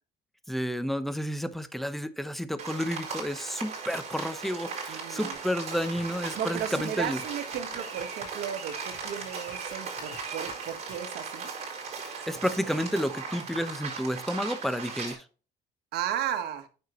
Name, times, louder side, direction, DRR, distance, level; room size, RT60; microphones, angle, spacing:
voice 1, 0.5-7.2 12.3-15.2, equal, ahead, 0.7 m, -31 dB
Rain, 2.6-15.1, right 5 dB, 40° right, 4.6 m, -38 dB
voice 2, 4.9-5.4 6.3-11.5 15.9-16.7, right 9 dB, 75° right, 1.3 m, -34 dB
sound 1, 5.3-11.0, left 4 dB, 55° left, 4.0 m, -50 dB
9.2 x 6.4 x 3.0 m
cardioid pair, 110°, 17 cm